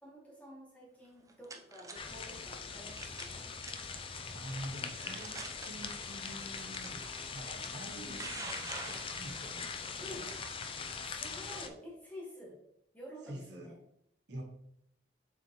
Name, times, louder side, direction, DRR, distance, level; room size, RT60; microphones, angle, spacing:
voice 1, 0.0-3.5 7.9-8.5 10.0-10.3 11.0-12.6 12.9-13.8, equal, 10° left, -3 dB, 1.6 m, -50 dB
sound 1, 1.0-1.9 3.0-3.3 3.6-4.0 4.6-4.7 5.2-5.7 6.7-6.9 7.8-9.5, right 3 dB, 20° right, 0.6 m, -44 dB
sound 2, 2.0-11.7, left 5 dB, 30° left, 0.5 m, -42 dB
voice 2, 4.3-7.0 7.3-8.2 8.5-9.7 10.0-10.3 13.3-13.7 14.3-14.4, right 1 dB, 70° right, 1 dB, 1.4 m, -46 dB
7.1 x 4.4 x 3.1 m, 0.75 s
head